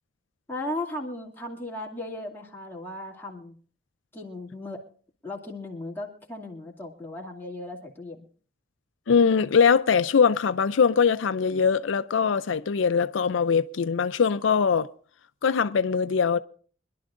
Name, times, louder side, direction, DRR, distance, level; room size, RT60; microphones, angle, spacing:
voice 1, 0.5-3.5 4.1-4.8 5.2-8.2, left 1 dB, 10° left, 2.4 m, -36 dB
voice 2, 9.1-14.9 15.4-16.4, left 6 dB, 80° left, 0.5 m, -22 dB
25.0 x 11.5 x 2.5 m
head